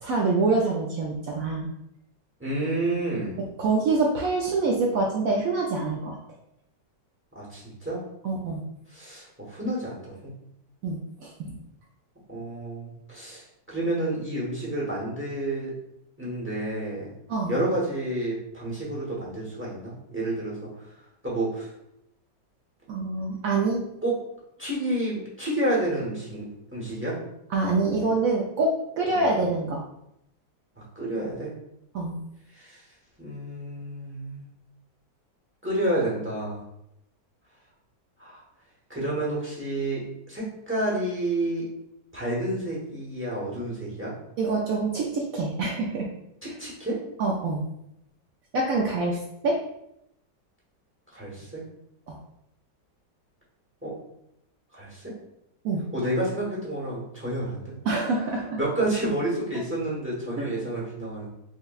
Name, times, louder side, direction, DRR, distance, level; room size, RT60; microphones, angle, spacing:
voice 1, 0.0-1.7 3.6-6.1 8.2-8.6 10.8-11.6 17.3-17.5 22.9-23.8 27.5-29.8 31.9-32.1 44.4-46.1 47.2-47.6 48.5-49.2 49.4-49.6 52.1-52.2 55.6-55.8 57.8-58.6 60.3-60.5, right 3 dB, 75° right, -1 dB, 0.8 m, -25 dB
voice 2, 2.4-3.4 7.3-8.0 8.9-10.3 12.3-15.7 16.2-17.1 17.5-20.7 21.2-21.7 24.0-24.1 24.6-27.2 29.1-29.3 30.8-31.5 32.5-32.8 33.2-34.5 35.6-36.6 38.2-38.4 38.9-41.7 42.1-44.1 46.4-47.0 51.1-51.6 53.8-53.9 54.7-55.1 55.9-57.7 58.6-61.3, right 1 dB, 10° right, -6 dB, 0.6 m, -30 dB
5.5 x 2.1 x 2.3 m, 0.79 s
omnidirectional pair, 1.9 m